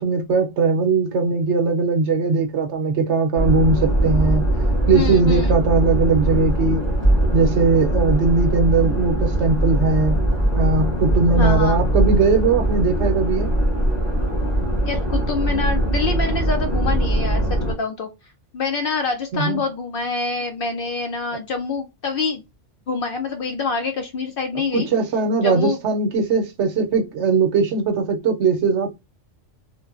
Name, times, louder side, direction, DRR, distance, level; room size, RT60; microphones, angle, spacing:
voice 1, 0.0-4.4 4.9-6.8 7.3-10.2 10.6-13.5 19.3-19.6 24.7-28.9, right 4 dB, 70° right, 0.9 m, -19 dB
sound 1, 3.3-17.7, right 1 dB, 15° left, 1.0 m, -21 dB
voice 2, 4.9-5.6 11.3-11.8 14.8-18.1 18.5-22.4 22.9-24.9 25.4-25.8, left 4 dB, 60° left, 0.6 m, -26 dB
3.1 x 2.1 x 2.4 m
omnidirectional pair, 1.3 m